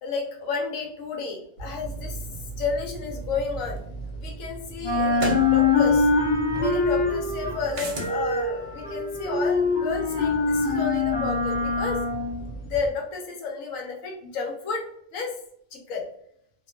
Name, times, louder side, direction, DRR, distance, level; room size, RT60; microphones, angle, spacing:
voice 1, 0.0-3.8 4.1-6.1 6.6-12.0 12.7-14.8 15.1-15.3 15.7-16.0, left 5 dB, 80° left, 0 dB, 1.0 m, -31 dB
sound 1, 1.6-4.4 4.7-12.9, left 3 dB, 55° left, 0.8 m, -24 dB
sound 2, 3.8-3.9 5.2-5.5 7.7-8.2, right 1 dB, 65° right, 0.9 m, -31 dB
2.4 x 2.2 x 2.4 m, 0.70 s
omnidirectional pair, 1.4 m